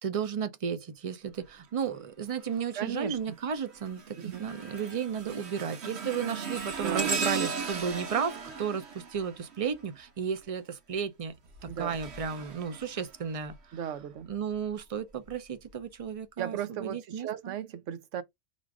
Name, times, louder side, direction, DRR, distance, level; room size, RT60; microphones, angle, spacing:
voice 1, 0.0-11.3 11.6-13.8 14.3-17.5, right 7 dB, 45° right, 0.5 m, -34 dB
sound 1, 2.4-2.8 3.3-10.1 11.3-13.5 14.2-14.4 15.3-15.4, right 5 dB, 65° right, 1.3 m, -37 dB
voice 2, 2.8-3.2 4.2-4.4 6.8-7.2 11.7-12.0 13.7-14.3 16.4-18.2, right 9 dB, 85° right, 1.0 m, -36 dB
3.8 x 2.4 x 4.7 m
omnidirectional pair, 1.2 m